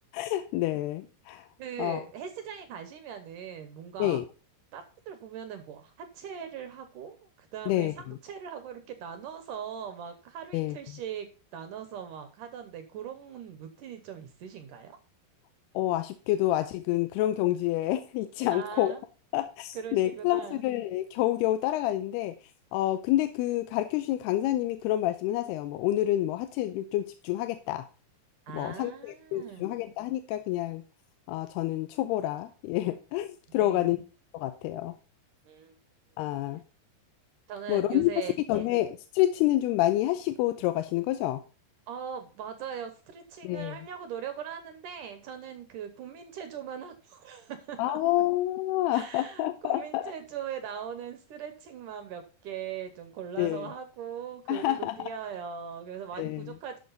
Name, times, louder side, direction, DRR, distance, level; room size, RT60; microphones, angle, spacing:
voice 1, 0.1-1.5 1.8-2.0 4.0-4.2 7.7-8.2 10.5-10.8 15.7-18.9 19.3-22.4 22.7-27.9 28.5-30.8 31.3-34.0 34.3-35.0 36.2-36.6 37.7-38.1 38.5-41.4 43.4-43.8 47.8-50.1 53.4-53.7 54.5-55.0 56.2-56.5, left 14 dB, 90° left, 9 dB, 2.7 m, -28 dB
voice 2, 1.6-4.2 4.7-11.3 11.5-15.0 18.5-19.1 19.7-20.6 28.5-29.8 33.6-34.0 35.5-35.8 37.5-38.7 41.9-48.0 48.9-56.8, right 8 dB, 70° right, 9 dB, 2.1 m, -40 dB
12.0 x 6.7 x 4.0 m, 0.34 s
omnidirectional pair, 4.6 m